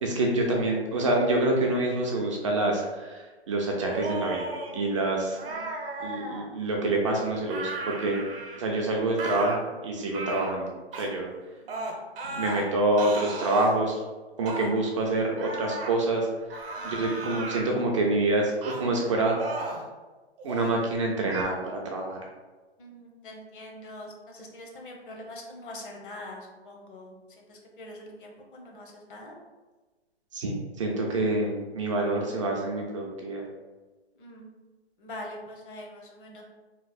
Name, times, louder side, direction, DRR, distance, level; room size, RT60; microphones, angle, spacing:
voice 1, 0.0-5.4 6.0-8.2 8.6-10.7 11.0-11.3 12.2-14.0 14.4-16.3 16.8-19.3 20.4-21.6 21.8-22.2 30.3-33.4, right 2 dB, 30° right, -1 dB, 0.4 m, -27 dB
sound 1, 3.8-4.7 5.4-6.5 7.5-8.7 9.2-9.6 10.1-10.5 10.9-11.1 11.7-12.6 13.0-13.7 14.5-14.7 15.4-15.9 16.5-17.7 18.6-18.8 19.3-19.9 20.4-20.7 21.3-21.4, right 2 dB, 60° right, 0.8 m, -35 dB
voice 2, 16.7-17.3 22.8-29.3 34.1-34.5 35.0-36.4, left 1 dB, 50° left, 1 dB, 0.8 m, -44 dB
3.1 x 2.0 x 4.0 m, 1.2 s
hypercardioid pair, 140°, 32 cm